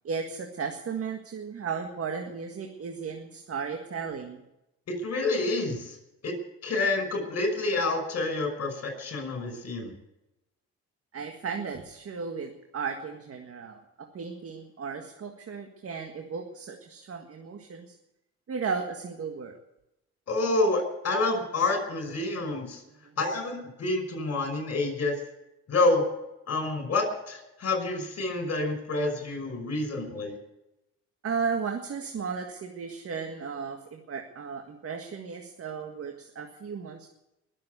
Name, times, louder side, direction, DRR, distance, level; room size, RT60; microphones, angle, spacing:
voice 1, 0.0-4.4 11.1-17.9 18.5-19.6 22.9-23.1 31.2-37.1, right 5 dB, 50° right, 4 dB, 1.8 m, -35 dB
voice 2, 4.9-6.0 6.2-6.3 6.6-9.9 20.3-22.8 23.2-25.2 25.7-26.0 26.5-30.3, left 2 dB, 55° left, 5 dB, 5.7 m, -28 dB
21.5 x 7.6 x 8.2 m, 0.91 s
cardioid pair, 90°, 30 cm